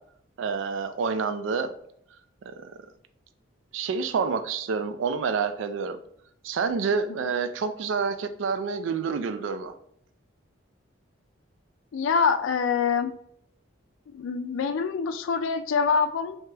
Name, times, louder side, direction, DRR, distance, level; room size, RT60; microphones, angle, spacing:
voice 1, 0.4-1.7 2.5-2.7 3.7-6.0 6.4-9.7, right 5 dB, 80° right, 10 dB, 0.3 m, -28 dB
voice 2, 11.9-13.1 14.1-16.4, left 5 dB, 85° left, 10 dB, 0.4 m, -25 dB
3.3 x 2.8 x 3.2 m, 0.68 s
head